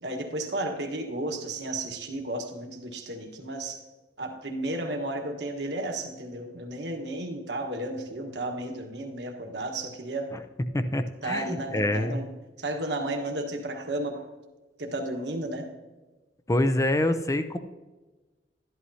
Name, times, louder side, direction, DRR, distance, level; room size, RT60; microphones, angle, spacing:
voice 1, 0.0-3.8 4.2-10.3 11.2-12.3 12.6-14.3 14.8-15.7, right 1 dB, 70° right, 3 dB, 1.4 m, -33 dB
voice 2, 10.7-12.2 16.5-17.6, left 1 dB, 20° left, 9 dB, 0.5 m, -26 dB
12.5 x 11.0 x 2.8 m, 1.2 s
head